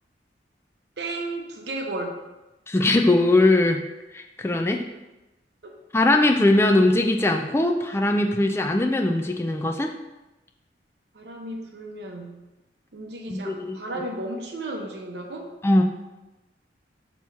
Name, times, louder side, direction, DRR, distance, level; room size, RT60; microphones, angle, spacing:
voice 1, 1.0-2.2 5.6-5.7 11.1-12.4 12.9-15.5, right 2 dB, 65° right, 2 dB, 0.8 m, -34 dB
voice 2, 2.7-3.8 4.1-4.8 5.9-9.9 13.3-13.8 15.6-15.8, left 2 dB, 15° left, 3 dB, 0.4 m, -20 dB
6.0 x 3.0 x 5.6 m, 1.0 s
head